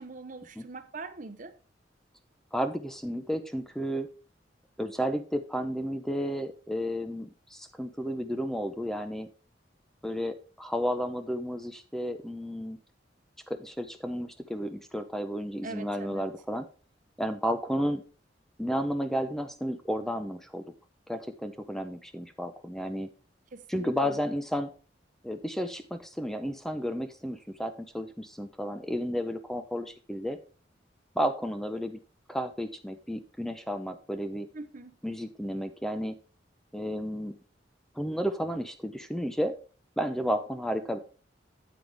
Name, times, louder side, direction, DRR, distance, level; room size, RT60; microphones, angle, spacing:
voice 1, 0.0-1.5 15.6-16.2 23.5-24.2 34.5-35.0, right 3 dB, 45° right, 0.8 m, -43 dB
voice 2, 2.5-4.1 4.8-9.3 10.0-12.8 13.5-16.7 17.2-18.0 18.6-20.6 21.1-23.1 23.7-24.7 25.2-30.4 31.2-32.0 32.3-34.5 35.0-36.1 36.7-37.4 38.0-39.6 40.0-41.0, equal, ahead, 0.7 m, -32 dB
9.0 x 8.1 x 3.4 m
head